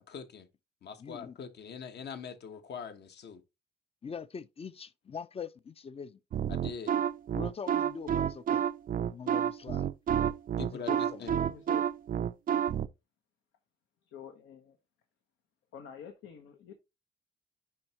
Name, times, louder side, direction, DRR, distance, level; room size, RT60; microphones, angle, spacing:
voice 1, 0.1-0.5 0.8-3.4 6.5-6.9 10.6-11.3, left 6 dB, 55° left, 1.2 m, -43 dB
voice 2, 1.0-1.4 4.0-6.2 7.3-8.6 9.1-9.9 10.7-11.3, left 6 dB, 30° left, 0.5 m, -42 dB
sound 1, 6.3-12.9, right 9 dB, 45° right, 0.4 m, -29 dB
voice 3, 11.5-11.9 14.1-14.8 15.7-16.7, left 8 dB, 80° left, 1.1 m, -47 dB
10.0 x 3.5 x 2.9 m
cardioid pair, 90°, 20 cm